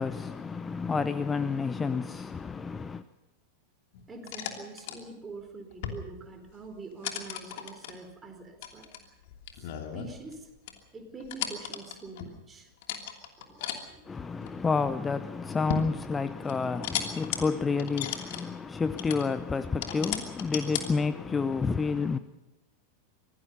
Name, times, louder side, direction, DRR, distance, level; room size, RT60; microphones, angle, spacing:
voice 1, 0.0-3.0 14.0-22.2, left 4 dB, 15° left, 0.7 m, -30 dB
sound 1, 3.9-5.0 5.7-6.2 6.5-6.7 7.0-7.9 8.6-10.4 10.7-10.8 11.2-12.3 12.8-13.8 14.4-14.9 15.4-16.0 16.5-17.4 17.8-18.4 19.0-19.3 19.8-20.9, left 9 dB, 50° left, 2.9 m, -35 dB
voice 2, 4.1-8.9 9.6-10.5 10.9-12.7 13.4-14.6 17.5-17.6, right 3 dB, 15° right, 4.4 m, -45 dB
25.5 x 18.5 x 5.5 m
figure-of-eight pair, 90°, 0 cm